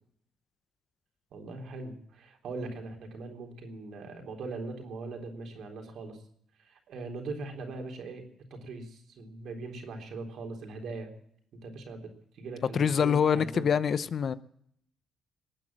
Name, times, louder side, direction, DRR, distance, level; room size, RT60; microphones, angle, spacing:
voice 1, 1.3-6.2 6.6-8.2 8.5-11.1 11.6-13.7, right 3 dB, 70° right, 3.7 m, -40 dB
voice 2, 12.7-14.3, left 7 dB, 50° left, 0.7 m, -25 dB
20.5 x 9.1 x 7.6 m
cardioid pair, 90°, 0 cm